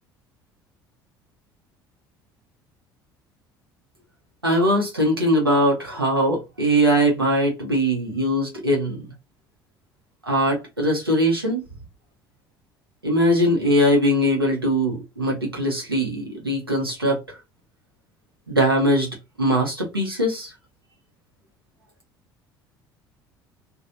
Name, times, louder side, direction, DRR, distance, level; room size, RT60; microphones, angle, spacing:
voice 1, 4.4-9.0 10.3-11.6 13.0-17.4 18.5-19.1 19.4-20.5, equal, 85° right, 1.1 m, -21 dB
3.0 x 2.5 x 2.6 m
figure-of-eight pair, 60°, 12 cm